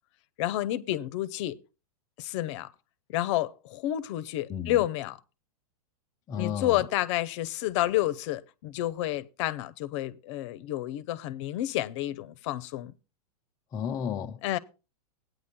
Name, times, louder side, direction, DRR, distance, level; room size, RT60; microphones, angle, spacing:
voice 1, 0.4-1.6 2.2-2.7 3.1-5.2 6.4-12.9 14.4-14.6, left 14 dB, 50° left, 0.7 m, -30 dB
voice 2, 4.5-4.8 6.3-6.8 13.7-14.4, left 8 dB, 20° left, 0.4 m, -33 dB
17.0 x 9.3 x 2.2 m
hypercardioid pair, 135°, 20 cm